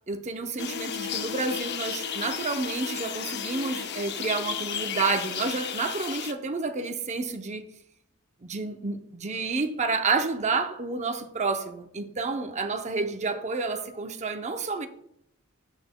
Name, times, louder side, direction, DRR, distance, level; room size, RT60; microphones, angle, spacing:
voice 1, 0.0-7.6 8.4-14.9, right 4 dB, 35° right, 0.6 m, -30 dB
sound 1, 0.6-6.3, left 8 dB, 55° left, 0.6 m, -33 dB
14.0 x 5.5 x 2.2 m
head